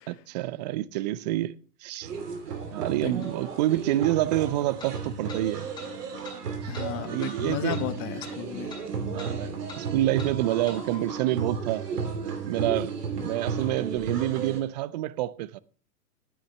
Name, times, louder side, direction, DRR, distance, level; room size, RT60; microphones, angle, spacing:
voice 1, 0.1-1.5 1.8-2.1 2.7-5.7 6.9-7.8 9.1-11.9 12.4-15.6, right 15 dB, 30° right, 0.4 m, -28 dB
sound 1, 2.0-14.6, right 5 dB, 75° right, 3.1 m, -34 dB
sound 2, 3.2-3.3 4.8-4.9 5.3-5.4 5.7-5.9 6.2-6.4 6.7-6.9 7.2-7.3 7.7-7.9 8.2-8.4 8.7-8.8 9.2-9.3 9.7-9.8 10.2-10.3 10.7-10.8, left 3 dB, 10° left, 5.5 m, -43 dB
voice 2, 6.7-8.7, left 11 dB, 35° left, 1.3 m, -34 dB
13.0 x 10.0 x 3.2 m
hypercardioid pair, 115°, 48 cm